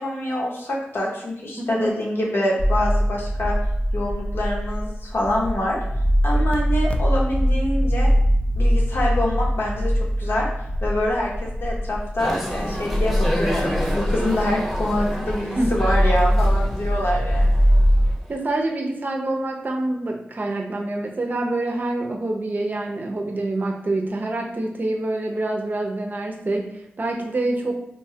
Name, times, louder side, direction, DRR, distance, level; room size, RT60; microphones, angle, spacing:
voice 1, 0.0-3.6 3.9-5.8 6.2-8.1 8.6-9.9 10.2-10.5 10.8-17.7, left 1 dB, 70° left, -2 dB, 0.8 m, -25 dB
voice 2, 1.6-1.9 15.6-15.7 18.3-27.8, right 2 dB, 45° right, 1 dB, 0.5 m, -26 dB
sound 1, 2.6-18.1, equal, 30° left, 0.3 m, -22 dB
sound 2, 12.2-18.4, equal, ahead, 0.9 m, -31 dB
3.0 x 2.1 x 2.7 m, 0.80 s
cardioid pair, 55°, 4 cm